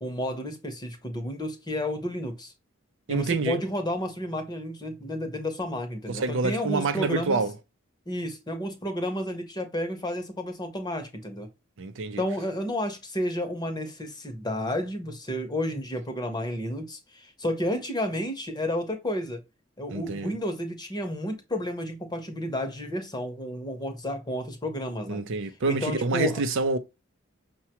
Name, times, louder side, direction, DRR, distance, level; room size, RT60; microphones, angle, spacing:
voice 1, 0.0-2.5 3.1-7.4 8.1-11.5 12.2-19.4 19.8-25.2 25.7-26.4, left 1 dB, 20° left, 0.8 m, -31 dB
voice 2, 3.1-3.6 6.1-7.5 11.8-12.2 19.9-20.3 25.1-26.8, right 3 dB, 65° right, 0.5 m, -27 dB
5.7 x 2.2 x 2.9 m
head